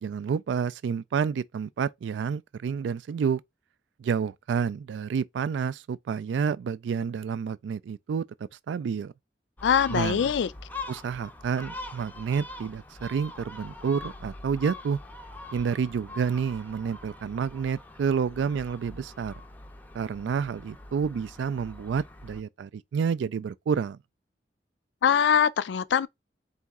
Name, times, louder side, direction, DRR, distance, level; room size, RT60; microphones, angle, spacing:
voice 1, 0.0-3.4 4.0-8.2 8.7-9.1 9.9-10.3 10.9-15.0 15.5-19.3 19.9-24.0, right 6 dB, 85° right, 0.3 m, -29 dB
voice 2, 9.6-10.5 25.0-26.1, left 8 dB, 80° left, 0.3 m, -22 dB
Gull seagull, 9.6-22.4, left 2 dB, 10° left, 0.5 m, -43 dB
4.1 x 2.6 x 3.5 m
head